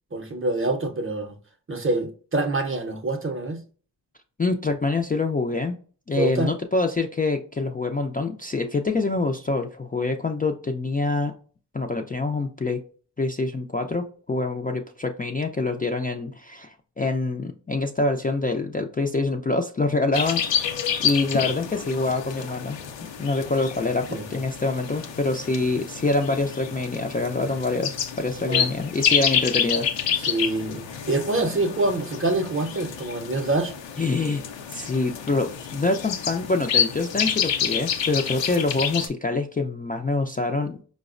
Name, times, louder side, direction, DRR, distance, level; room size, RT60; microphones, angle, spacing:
voice 1, 0.1-1.4 1.7-3.6 6.2-6.5 24.1-24.3 28.4-28.7 29.2-29.3 30.2-33.7, right 2 dB, 30° right, 0.7 m, -26 dB
voice 2, 4.4-5.8 6.1-11.3 11.7-12.8 13.2-20.4 21.0-22.8 23.2-30.2 34.0-34.4 34.7-40.8, left 3 dB, 20° left, 0.4 m, -25 dB
sound 1, 20.1-39.1, left 8 dB, 80° left, 0.6 m, -28 dB
4.6 x 2.1 x 2.4 m
cardioid pair, 40°, 44 cm